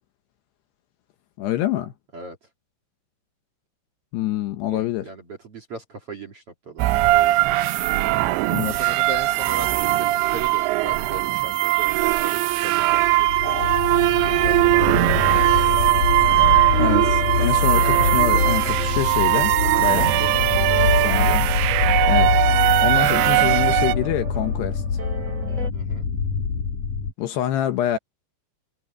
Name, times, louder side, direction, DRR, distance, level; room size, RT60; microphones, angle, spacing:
voice 1, 1.4-1.9 4.1-5.1 8.4-8.7 16.8-19.5 19.8-20.1 20.8-21.8 22.1-22.3 22.8-24.8 27.2-28.0, left 12 dB, 75° left, 2.6 m, -26 dB
voice 2, 4.7-6.9 8.6-13.7 14.2-15.4 19.6-20.5 25.7-26.1, right 4 dB, 60° right, 1.5 m, -37 dB
sound 1, 6.8-24.0, right 18 dB, 80° right, 2.6 m, -20 dB
sound 2, 12.8-27.1, left 6 dB, 45° left, 3.5 m, -24 dB
sound 3, 13.4-25.7, right 3 dB, 15° right, 4.6 m, -33 dB
omnidirectional pair, 5.9 m